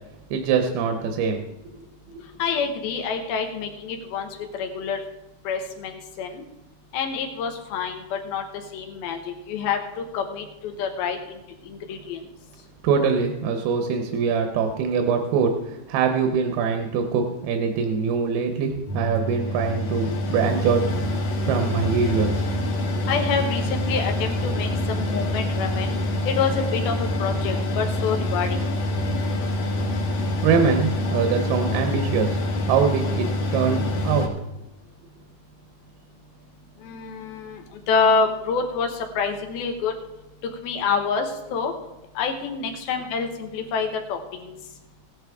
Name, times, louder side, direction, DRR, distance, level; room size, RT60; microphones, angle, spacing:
voice 1, 0.3-1.4 2.1-2.2 12.8-20.9 21.4-22.5 30.4-32.4 32.7-34.3, right 6 dB, 80° right, 4 dB, 2.8 m, -23 dB
voice 2, 2.4-4.3 4.6-5.0 5.5-6.3 6.9-8.4 8.7-11.4 11.7-12.2 23.1-25.9 26.3-28.6 36.8-39.9 40.6-41.7 42.2-44.5, left 5 dB, 75° left, 4 dB, 3.0 m, -27 dB
Mechanical fan, 18.9-34.3, left 1 dB, 55° left, 2.5 m, -26 dB
16.5 x 10.5 x 3.5 m, 0.96 s
omnidirectional pair, 4.5 m